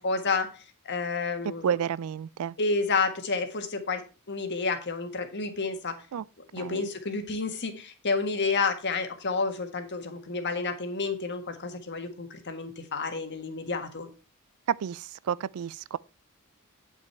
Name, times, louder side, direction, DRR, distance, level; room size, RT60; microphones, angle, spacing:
voice 1, 0.0-1.8 2.6-4.0 4.3-5.9 6.5-14.1, left 4 dB, 55° left, 1.6 m, -30 dB
voice 2, 1.6-2.5 6.1-6.2 6.6-6.9 14.7-16.0, right 8 dB, 85° right, 0.4 m, -30 dB
9.3 x 6.0 x 4.5 m
head